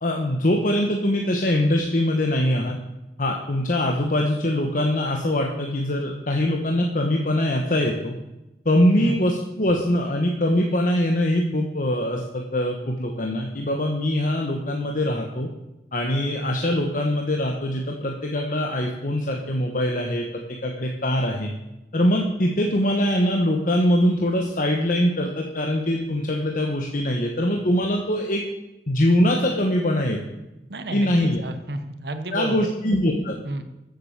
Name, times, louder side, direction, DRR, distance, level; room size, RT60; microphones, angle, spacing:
voice 1, 0.0-2.8 3.2-8.1 8.6-15.5 15.9-21.5 21.9-28.4 28.9-30.2 30.9-31.4 32.3-33.4, left 1 dB, 50° left, 1 dB, 1.3 m, -23 dB
voice 2, 30.7-32.7 33.4-33.6, right 2 dB, 65° right, 9 dB, 1.0 m, -31 dB
14.0 x 7.9 x 7.4 m, 0.96 s
head